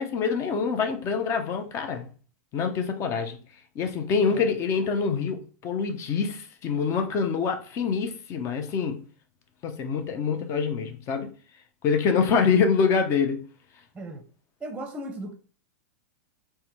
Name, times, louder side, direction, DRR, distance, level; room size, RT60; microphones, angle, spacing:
voice 1, 0.0-2.1 2.5-3.4 3.8-9.0 9.6-11.3 11.8-13.4, left 5 dB, 35° left, 0.6 m, -25 dB
voice 2, 14.6-15.3, right 1 dB, 15° right, 0.7 m, -36 dB
3.3 x 2.2 x 2.9 m
hypercardioid pair, 100°, 8 cm